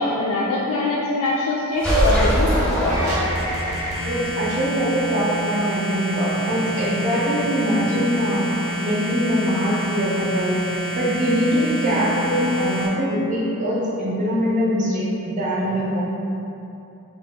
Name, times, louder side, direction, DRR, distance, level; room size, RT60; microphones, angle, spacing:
voice 1, 0.0-3.2, left 2 dB, 90° left, -3 dB, 0.3 m, -23 dB
sound 1, 1.8-3.8, equal, 5° left, 0.7 m, -21 dB
sound 2, 2.9-12.9, right 1 dB, 75° right, 0.6 m, -28 dB
voice 2, 4.0-8.4 8.8-10.6 10.9-16.0, equal, 35° right, -7 dB, 0.5 m, -22 dB
2.7 x 2.2 x 3.4 m, 2.8 s
head